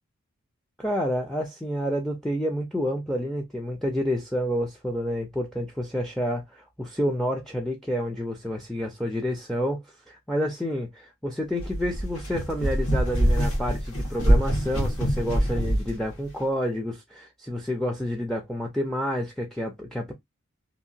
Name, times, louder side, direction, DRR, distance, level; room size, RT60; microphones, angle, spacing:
voice 1, 0.8-20.1, equal, ahead, 0.4 m, -29 dB
sound 1, 11.6-15.9, equal, 70° left, 1.4 m, -24 dB
2.8 x 2.4 x 2.6 m
head